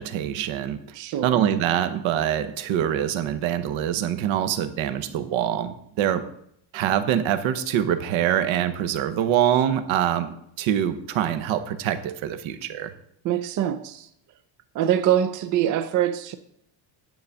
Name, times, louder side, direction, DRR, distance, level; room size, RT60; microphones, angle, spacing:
voice 1, 0.0-0.8 1.2-6.2 6.7-12.9, right 10 dB, 75° right, 1.0 m, -24 dB
voice 2, 0.9-1.5 13.2-14.1 14.7-16.4, right 11 dB, 45° right, 0.4 m, -24 dB
9.6 x 3.9 x 6.8 m
cardioid pair, 170°, 47 cm